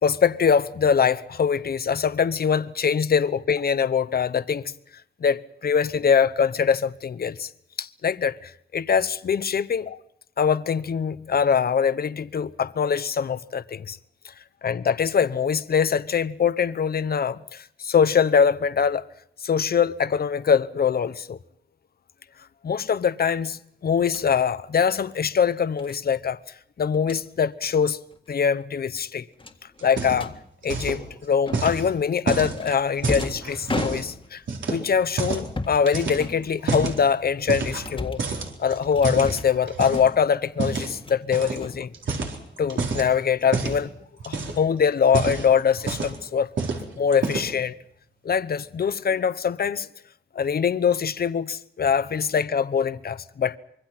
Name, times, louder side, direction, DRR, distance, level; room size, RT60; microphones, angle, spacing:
voice 1, 0.0-4.7 5.2-7.5 7.8-10.0 10.4-14.0 14.2-14.3 14.6-19.1 19.4-21.4 22.6-26.4 26.8-28.0 28.3-29.3 29.8-30.3 30.6-34.4 34.7-38.2 38.6-41.9 42.6-43.9 44.2-46.5 47.0-47.8 48.2-49.9 50.3-53.6, left 7 dB, 50° left, 0.9 m, -23 dB
sound 1, 24.0-24.3 25.8-26.0 26.9-27.2 27.6-27.8 28.1-28.3 28.6-28.7 29.4-30.3 31.5-31.9 32.6-34.4 35.2-35.9 36.2-36.9 37.4-38.3 38.9-39.6 39.9-40.4 40.7-41.2 41.5-42.4, left 3 dB, 25° left, 1.8 m, -35 dB
sound 2, 29.8-30.4 30.6-31.0 31.5-34.1 34.5-35.5 35.9-37.0 37.5-37.9 38.2-40.1 40.6-40.9 41.3-41.6 41.9-43.1 43.5-43.8 44.2-44.7 45.0-46.2 46.6-46.8 47.1-47.6, right 4 dB, 70° right, 4.2 m, -28 dB
25.5 x 23.5 x 5.9 m
wide cardioid pair, 130°, 20 cm